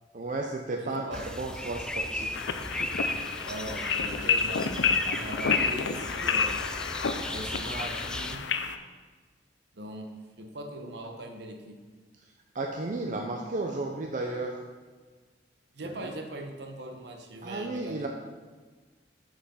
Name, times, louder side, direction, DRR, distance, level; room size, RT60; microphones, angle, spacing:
voice 1, 0.1-2.4 12.5-14.6 15.8-15.9 17.4-18.1, right 2 dB, 45° right, 1 dB, 0.6 m, -33 dB
voice 2, 0.8-1.2 3.4-6.6 7.3-8.4 9.7-10.1 10.4-11.8 15.7-18.1, right 1 dB, 65° right, 3 dB, 1.0 m, -40 dB
sound 1, 1.1-8.4, left 1 dB, 5° left, 0.3 m, -36 dB
sound 2, 2.3-8.7, left 5 dB, 85° left, 0.5 m, -29 dB
6.2 x 6.1 x 5.5 m, 1.4 s
head